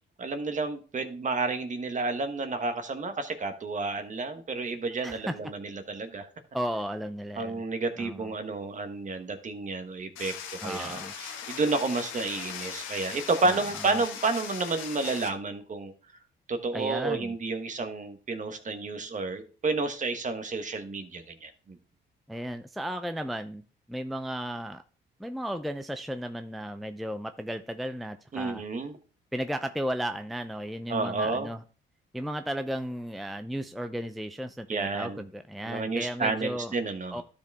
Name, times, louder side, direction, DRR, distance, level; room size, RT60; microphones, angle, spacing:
voice 1, 0.2-6.3 7.4-15.9 16.5-21.8 28.3-29.0 30.9-31.5 34.7-35.2 35.6-37.2, right 3 dB, 40° right, 8 dB, 1.3 m, -31 dB
voice 2, 5.0-5.4 6.5-7.6 8.0-8.3 10.6-11.1 13.4-14.0 16.7-17.4 22.3-23.6 23.9-24.8 25.2-28.6 29.3-31.6 32.1-36.7 37.1-37.2, equal, ahead, 8 dB, 0.5 m, -34 dB
sound 1, 10.2-15.3, left 8 dB, 90° left, 1.2 m, -39 dB
12.0 x 5.0 x 3.5 m, 0.38 s
cardioid pair, 90°, 20 cm